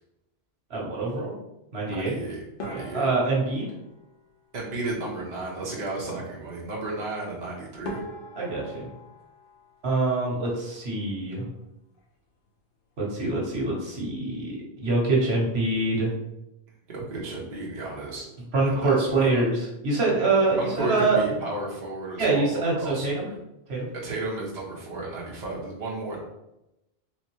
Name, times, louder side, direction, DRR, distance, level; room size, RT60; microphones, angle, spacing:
voice 1, 0.7-1.3 1.7-2.1 2.7-3.6 8.4-8.9 9.8-11.4 13.0-16.1 18.5-21.2 22.2-23.3 23.7-23.9, right 3 dB, 75° right, -3 dB, 1.5 m, -25 dB
voice 2, 1.9-3.1 4.5-8.0 16.9-18.3 18.7-19.4 20.6-23.1 24.0-26.2, right 2 dB, 45° right, -4 dB, 1.1 m, -33 dB
sound 1, 2.6-5.0 7.3-7.4 7.8-10.6 10.9-11.6 11.9-12.1 12.5-12.6 13.2-13.5, left 1 dB, 60° left, 1.0 m, -43 dB
4.2 x 3.6 x 3.0 m, 0.90 s
omnidirectional pair, 1.1 m